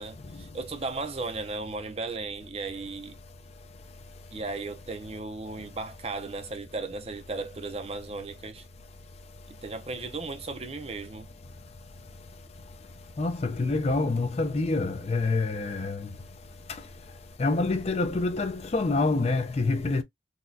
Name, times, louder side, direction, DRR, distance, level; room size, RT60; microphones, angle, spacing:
voice 1, 0.0-3.2 4.3-8.6 9.5-11.3, right 3 dB, 35° right, 0.5 m, -36 dB
voice 2, 13.2-16.1 17.4-20.0, left 3 dB, 35° left, 0.4 m, -26 dB
4.0 x 2.2 x 2.6 m
head